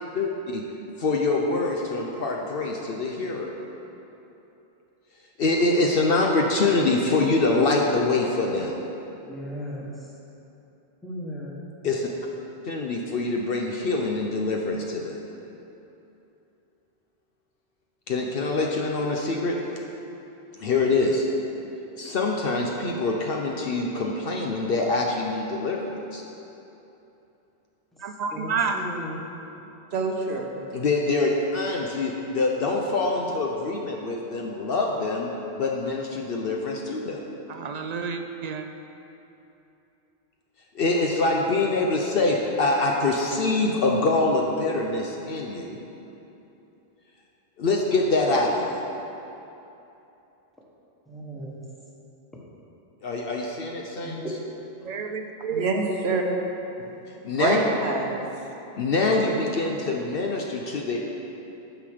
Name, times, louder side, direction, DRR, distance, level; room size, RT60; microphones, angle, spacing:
voice 1, 0.1-0.6 1.0-3.5 5.4-8.7 11.8-12.1 12.6-15.2 18.1-19.6 20.6-21.2 22.0-25.8 26.1-26.2 30.7-35.3 35.6-37.2 40.7-45.8 47.6-48.8 53.0-54.2 57.2-57.6 58.7-61.0, left 3 dB, 65° left, 0 dB, 0.9 m, -24 dB
voice 2, 9.2-10.1 11.0-11.6 28.3-29.3 51.1-51.6 54.0-54.3, equal, ahead, -5 dB, 1.3 m, -36 dB
voice 3, 28.0-28.8 37.5-38.6 54.8-55.6, right 5 dB, 55° right, 6 dB, 0.4 m, -29 dB
voice 4, 29.9-30.5 55.5-56.2 57.4-58.2, right 3 dB, 75° right, 2 dB, 1.1 m, -25 dB
9.1 x 6.0 x 4.9 m, 2.9 s
omnidirectional pair, 1.1 m